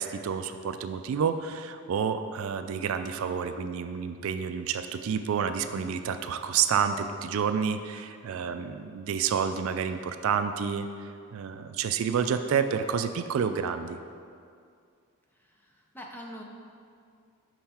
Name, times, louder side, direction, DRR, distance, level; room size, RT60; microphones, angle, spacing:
voice 1, 0.0-14.0, right 7 dB, 70° right, 9 dB, 0.3 m, -29 dB
voice 2, 15.6-16.4, equal, 10° left, -1 dB, 0.6 m, -43 dB
5.7 x 5.5 x 4.2 m, 2.3 s
head